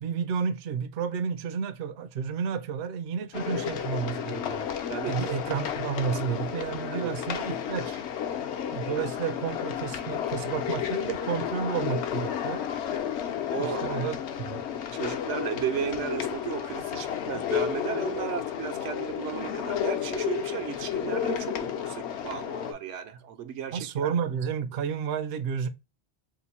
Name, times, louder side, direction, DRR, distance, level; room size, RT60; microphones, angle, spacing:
voice 1, 0.0-4.7 5.1-8.0 8.7-12.7 13.6-14.6 23.7-25.7, right 7 dB, 65° right, 0.7 m, -31 dB
sound 1, 3.3-22.7, left 9 dB, 70° left, 0.9 m, -32 dB
voice 2, 13.5-13.8 14.9-24.1, right 9 dB, 85° right, 1.0 m, -34 dB
2.9 x 2.5 x 4.0 m
omnidirectional pair, 1.2 m